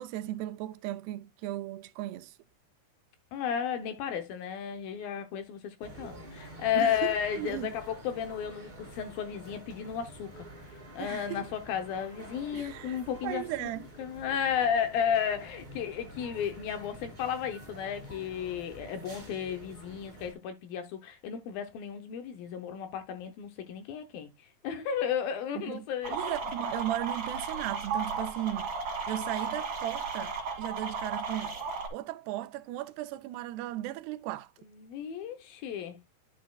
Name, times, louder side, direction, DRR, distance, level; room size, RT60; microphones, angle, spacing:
voice 1, 0.0-2.3 6.8-7.7 11.0-11.4 12.5-13.9 25.6-25.9 26.1-28.7 29.1-31.6 31.9-34.5, right 15 dB, 80° right, 2.5 m, -36 dB
voice 2, 3.3-10.4 10.9-13.7 14.0-26.3 34.8-36.0, left 8 dB, 75° left, 2.3 m, -33 dB
sound 1, 5.8-20.3, right 1 dB, 15° right, 2.1 m, -48 dB
sound 2, 26.0-31.9, right 4 dB, 45° right, 2.7 m, -35 dB
11.0 x 6.2 x 2.3 m
omnidirectional pair, 4.8 m